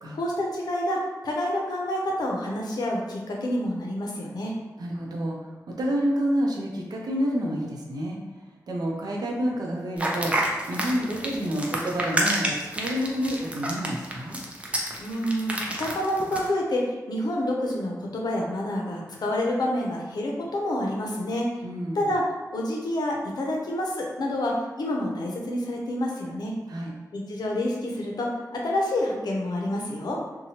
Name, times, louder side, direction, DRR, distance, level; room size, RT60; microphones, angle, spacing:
voice 1, 0.1-4.5 15.0-21.5 21.9-22.2 22.5-24.5 24.8-26.5 27.1-30.2, left 1 dB, 90° left, -1 dB, 0.5 m, -28 dB
voice 2, 4.8-5.5 5.8-8.2 8.7-14.4 21.6-22.1 26.7-26.9, equal, 75° right, -1 dB, 0.6 m, -28 dB
sound 1, 10.0-16.5, right 1 dB, 20° right, 0.4 m, -29 dB
2.8 x 2.2 x 2.9 m, 1.2 s
wide cardioid pair, 100°, 7 cm